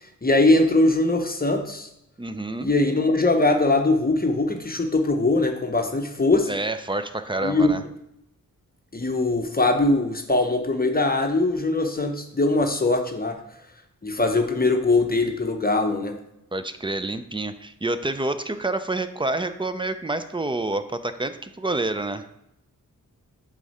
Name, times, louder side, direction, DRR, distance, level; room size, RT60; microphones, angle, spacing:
voice 1, 0.2-1.9 2.6-6.5 7.4-7.7 8.9-13.4 14.0-16.2, left 2 dB, 25° left, 4 dB, 0.7 m, -21 dB
voice 2, 2.2-2.7 6.5-7.8 16.5-22.3, right 2 dB, 15° right, 10 dB, 0.4 m, -28 dB
8.2 x 3.8 x 4.2 m, 0.83 s
wide cardioid pair, 105°, 34 cm